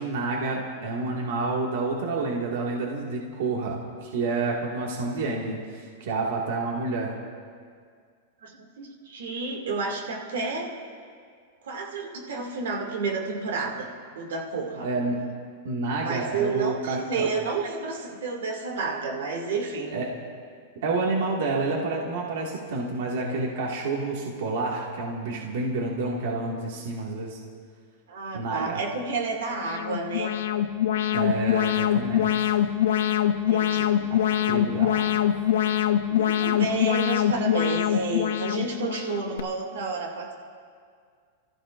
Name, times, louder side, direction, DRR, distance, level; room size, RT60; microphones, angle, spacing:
voice 1, 0.0-7.1 14.8-15.2 15.6-17.3 19.9-20.1 20.8-27.4 28.3-28.8 31.1-32.5 34.1-34.2 34.5-35.3, right 3 dB, 60° right, -2 dB, 2.0 m, -29 dB
voice 2, 8.4-10.7 11.6-13.9 14.1-14.9 16.0-19.9 28.1-30.3 33.3-33.9 36.1-40.3, right 4 dB, 85° right, 0 dB, 2.4 m, -30 dB
Alarm, 29.5-39.4, left 10 dB, 75° left, 0.7 m, -24 dB
30.0 x 14.5 x 2.6 m, 2.1 s
supercardioid pair, 175°, 0 cm